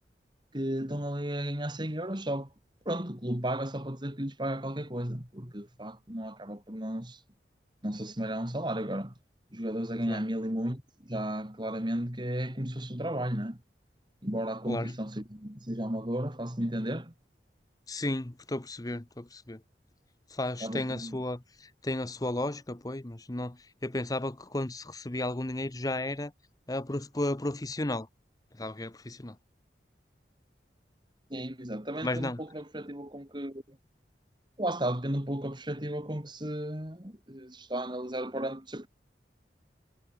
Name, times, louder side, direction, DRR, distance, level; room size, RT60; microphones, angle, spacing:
voice 1, 0.5-2.5 2.9-7.2 7.8-9.1 9.5-13.6 14.2-17.1 20.6-21.2 31.3-33.8 34.6-38.9, right 1 dB, 25° right, 3.7 m, -34 dB
voice 2, 17.9-19.6 20.3-26.3 26.7-28.1 28.6-29.4 32.0-32.4, left 1 dB, 20° left, 0.9 m, -34 dB
head